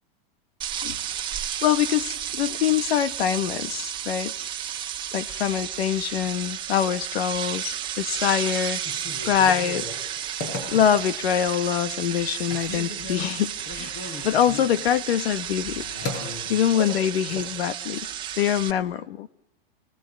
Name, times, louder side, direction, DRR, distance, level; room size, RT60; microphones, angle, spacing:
sound 1, 0.6-18.7, right 10 dB, 15° right, 1.3 m, -32 dB
voice 1, 1.6-4.3 5.1-8.8 9.2-9.9 10.7-15.8 16.5-18.1 18.4-19.3, left 10 dB, 85° left, 1.5 m, -24 dB
Telephone, 8.8-11.3 11.7-12.2 12.5-17.5, left 3 dB, 45° left, 6.3 m, -37 dB
29.5 x 20.0 x 9.5 m
supercardioid pair, 165°, 30 cm